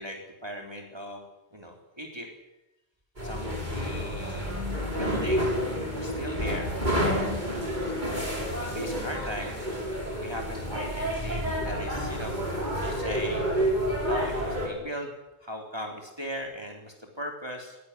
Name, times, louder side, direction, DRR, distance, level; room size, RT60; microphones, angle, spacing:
voice 1, 0.0-2.3 3.2-4.5 4.9-5.5 5.9-6.7 7.0-7.5 8.7-9.6 9.9-12.4 12.6-13.5 14.0-15.1 15.4-17.8, equal, 20° right, 1 dB, 3.9 m, -38 dB
sound 1, 3.2-14.7, equal, 40° right, 6.9 m, -29 dB
21.5 x 20.5 x 9.9 m, 0.95 s
omnidirectional pair, 1.2 m